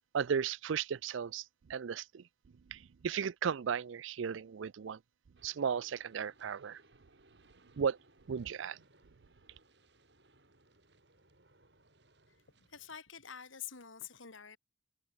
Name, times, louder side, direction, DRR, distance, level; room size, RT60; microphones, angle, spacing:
voice 1, 0.1-1.4 1.7-2.2 2.7-5.0 5.4-6.8 7.8-8.0 8.3-8.8, right 7 dB, 75° right, 0.4 m, -35 dB
sound 1, 5.4-12.9, right 2 dB, 60° right, 5.6 m, -66 dB
voice 2, 12.6-14.6, left 8 dB, 80° left, 2.8 m, -47 dB
head